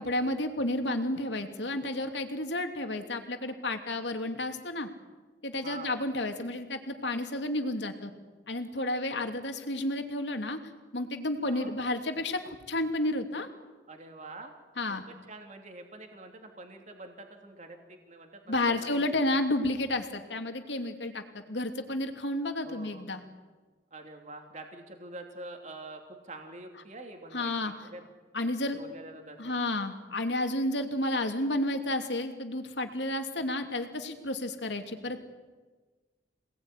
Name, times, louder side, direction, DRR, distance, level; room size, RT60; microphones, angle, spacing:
voice 1, 0.0-4.9 5.4-8.1 8.5-10.6 10.9-13.5 14.8-15.0 18.5-23.2 27.3-27.9 28.3-28.8 29.4-35.2, left 1 dB, 80° left, 5 dB, 2.8 m, -31 dB
voice 2, 5.6-5.9 11.5-11.7 13.9-14.5 14.9-19.2 22.6-23.2 23.9-28.0 28.8-29.6, right 2 dB, 40° right, 3 dB, 2.9 m, -46 dB
27.5 x 19.5 x 9.9 m, 1.3 s
head